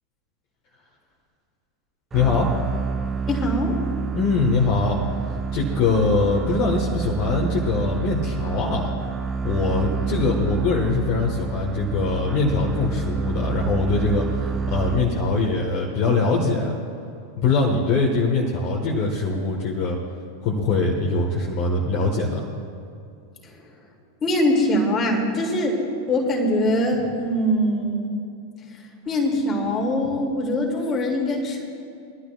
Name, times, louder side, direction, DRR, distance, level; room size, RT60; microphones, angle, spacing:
voice 1, 2.1-2.5 4.1-5.0 5.5-8.9 9.4-16.8 17.4-20.0 20.4-22.5, left 3 dB, 40° left, -1 dB, 1.3 m, -22 dB
sound 1, 2.1-15.5, right 5 dB, 20° right, 0.6 m, -28 dB
voice 2, 3.3-3.8 23.4-23.7 24.2-25.8 26.1-28.1 29.1-31.6, left 1 dB, 25° left, 0 dB, 2.3 m, -22 dB
22.5 x 12.0 x 2.3 m, 2.5 s
figure-of-eight pair, 90°, 0 cm